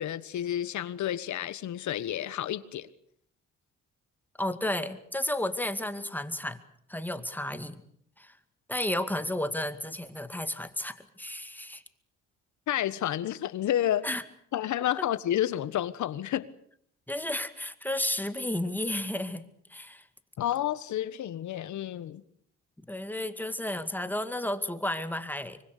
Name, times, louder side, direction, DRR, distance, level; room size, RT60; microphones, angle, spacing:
voice 1, 0.0-2.9 12.7-14.1 14.5-16.5 20.4-22.2, left 11 dB, 75° left, 1.5 m, -30 dB
voice 2, 4.4-6.6 6.9-7.8 8.2-8.3 8.7-11.8 14.0-14.2 17.1-20.0 22.9-25.6, left 1 dB, 5° left, 2.2 m, -32 dB
25.0 x 23.5 x 6.7 m
cardioid pair, 90°, 30 cm